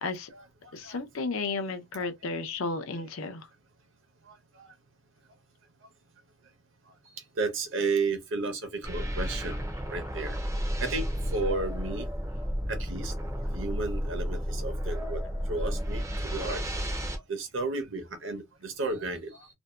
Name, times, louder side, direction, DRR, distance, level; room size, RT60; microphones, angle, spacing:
voice 1, 0.7-3.5, left 3 dB, 80° left, 0.6 m, -33 dB
voice 2, 7.4-9.6 9.9-10.4 10.8-12.1 12.7-13.1 13.5-15.2 15.5-16.0 16.3-16.6 17.3-19.5, right 3 dB, 65° right, 0.7 m, -32 dB
sound 1, 8.8-17.2, equal, 15° right, 0.4 m, -32 dB
2.6 x 2.1 x 2.3 m
head